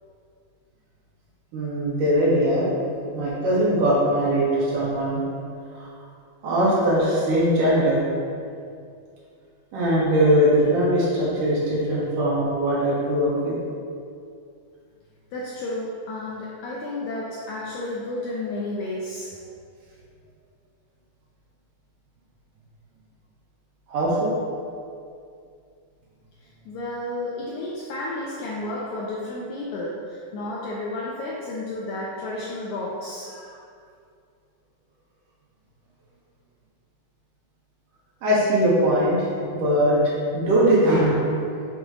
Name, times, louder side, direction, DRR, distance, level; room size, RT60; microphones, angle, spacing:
voice 1, 1.5-2.7 3.1-5.2 5.8-5.9 6.4-8.0 9.7-13.6 23.9-24.3 38.2-39.3 39.5-41.3, equal, 65° right, -7 dB, 3.0 m, -21 dB
voice 2, 15.3-19.4 26.6-33.6, left 2 dB, 85° left, -4 dB, 1.7 m, -32 dB
7.0 x 4.8 x 3.7 m, 2.4 s
omnidirectional pair, 4.1 m